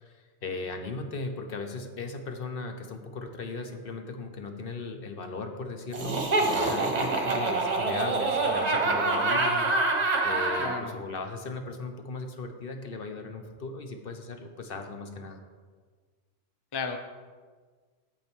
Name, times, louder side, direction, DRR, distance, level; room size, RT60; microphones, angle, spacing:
voice 1, 0.0-15.4, left 3 dB, 55° left, 5 dB, 1.0 m, -37 dB
Laughter, 5.9-10.8, right 3 dB, 35° right, 1.1 m, -26 dB
voice 2, 10.6-11.0 16.7-17.0, left 5 dB, 35° left, 6 dB, 0.4 m, -33 dB
8.4 x 7.5 x 4.5 m, 1.5 s
omnidirectional pair, 1.2 m